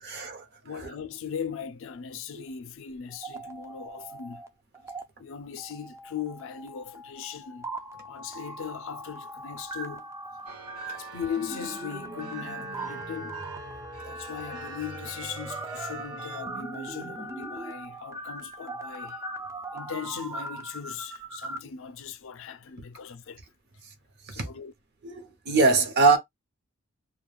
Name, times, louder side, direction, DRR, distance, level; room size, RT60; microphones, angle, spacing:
voice 1, 0.0-0.5 0.7-0.9 2.4-2.5 14.0-14.1 24.2-24.5 25.0-26.2, right 4 dB, 50° right, 0.7 m, -23 dB
voice 2, 0.6-4.4 5.2-7.7 8.1-10.1 10.9-13.4 14.1-19.2 19.7-23.4 24.3-24.7, left 7 dB, 65° left, 0.4 m, -38 dB
sound 1, 3.1-4.5 4.7-5.0 5.6-21.6, right 1 dB, 15° right, 0.3 m, -39 dB
sound 2, 10.5-16.4, right 6 dB, 85° right, 0.6 m, -46 dB
2.3 x 2.2 x 3.1 m
head